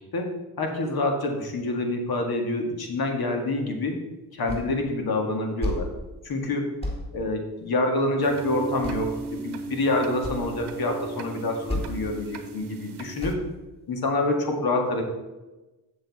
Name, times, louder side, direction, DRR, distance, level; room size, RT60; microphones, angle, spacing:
voice 1, 0.6-4.0 4.3-5.9 6.2-6.7 7.1-13.4 13.9-15.0, left 2 dB, 55° left, 3 dB, 1.8 m, -27 dB
sound 1, 4.5-4.8 5.1-5.9 6.2-6.4 6.8-7.0 8.2-8.3 8.8-9.3 9.7-9.8 10.0-10.4 11.2-11.3 11.7-12.1 12.4-12.6 13.2-13.5, left 1 dB, 15° left, 2.3 m, -31 dB
sound 2, 8.2-13.3, right 3 dB, 65° right, 1.0 m, -36 dB
7.9 x 7.0 x 4.1 m, 1.1 s
cardioid pair, 70°, 43 cm